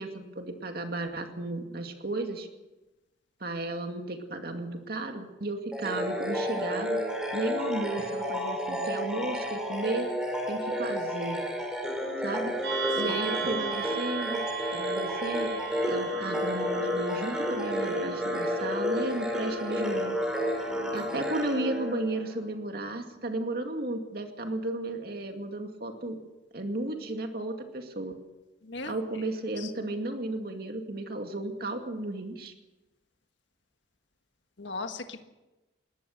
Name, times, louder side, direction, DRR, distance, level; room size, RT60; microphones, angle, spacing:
voice 1, 0.0-2.5 3.4-7.0 7.3-10.1 10.5-11.4 12.2-12.6 12.9-14.4 14.7-20.1 20.9-26.2 26.5-28.2 28.9-32.5, right 2 dB, 55° right, 4 dB, 2.3 m, -34 dB
sound 1, 5.7-22.5, equal, 5° right, 5.1 m, -31 dB
sound 2, 12.6-21.3, right 8 dB, 75° right, 6.5 m, -38 dB
voice 2, 28.6-28.9 29.6-29.7 34.6-35.2, left 3 dB, 80° left, 7 dB, 1.6 m, -37 dB
21.5 x 18.5 x 6.7 m, 1.1 s
head